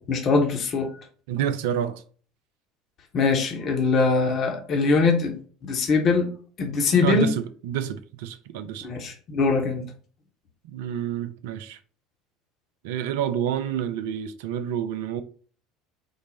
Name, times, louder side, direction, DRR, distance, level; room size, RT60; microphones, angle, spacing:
voice 1, 0.1-0.9 3.1-5.4 5.6-6.3 6.6-7.3 8.8-9.8, left 4 dB, 45° left, 0.8 m, -22 dB
voice 2, 1.3-2.0 7.0-8.9 10.6-11.8 12.8-15.2, right 9 dB, 65° right, 0.3 m, -28 dB
3.9 x 2.0 x 3.3 m
figure-of-eight pair, 70°, 0 cm